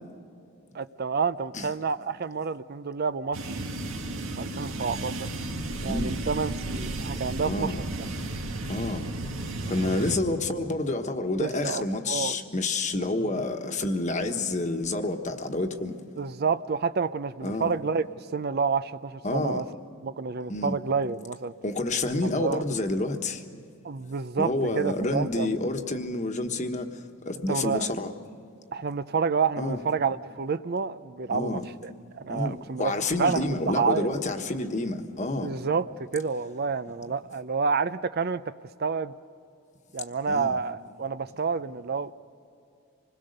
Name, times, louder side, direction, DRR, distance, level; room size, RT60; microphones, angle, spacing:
voice 1, 0.7-3.6 4.4-5.3 5.8-8.1 9.6-10.2 11.4-12.4 16.2-18.0 18.3-19.7 20.0-21.5 22.2-22.6 23.8-25.5 27.5-27.9 28.7-32.9 33.2-34.1 35.4-35.9 36.1-38.5 38.8-39.1 39.9-42.1, right 5 dB, 45° right, 0.5 m, -29 dB
sound 1, 3.3-10.2, right 2 dB, 75° right, 2.1 m, -33 dB
voice 2, 5.8-6.2 7.4-7.8 8.7-9.1 9.7-16.0 17.4-17.7 19.2-19.6 20.5-20.7 21.6-23.4 24.4-26.9 27.3-28.1 29.6-29.8 31.3-31.6 32.3-35.5 40.3-40.6, left 2 dB, 35° left, 1.3 m, -29 dB
26.5 x 21.0 x 6.6 m
head